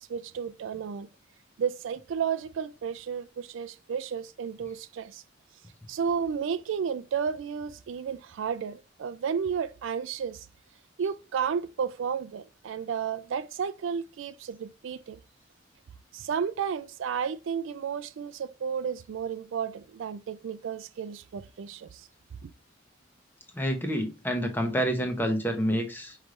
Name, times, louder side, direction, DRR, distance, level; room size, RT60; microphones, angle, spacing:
voice 1, 0.1-1.1 1.6-5.2 5.9-10.5 11.0-15.2 16.1-22.1, right 7 dB, 80° right, 0.4 m, -32 dB
voice 2, 23.6-26.2, equal, 10° left, 0.7 m, -28 dB
5.2 x 3.2 x 2.4 m
head